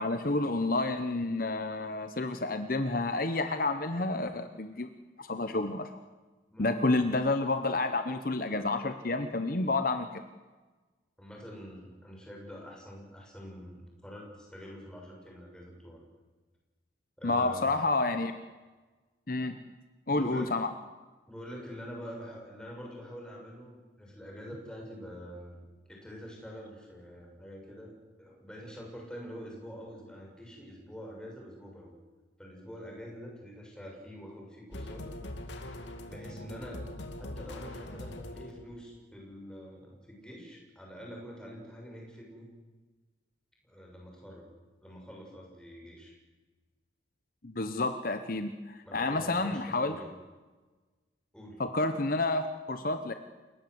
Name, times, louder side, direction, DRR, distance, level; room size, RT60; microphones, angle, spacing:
voice 1, 0.0-4.9 5.2-6.0 6.6-10.2 17.2-18.3 19.3-19.6 20.1-20.7 47.4-49.9 51.6-53.1, left 2 dB, 50° left, 9 dB, 1.1 m, -30 dB
voice 2, 11.2-16.0 17.2-17.7 20.1-20.6 21.3-25.6 25.9-27.9 28.2-31.9 32.4-35.0 36.1-36.9 37.2-42.5 43.6-44.5 44.8-46.2 48.8-50.1 51.3-51.6, equal, 5° left, -1 dB, 6.5 m, -46 dB
sound 1, 34.7-38.9, left 1 dB, 75° left, 2.8 m, -42 dB
29.0 x 18.0 x 8.0 m, 1.3 s
head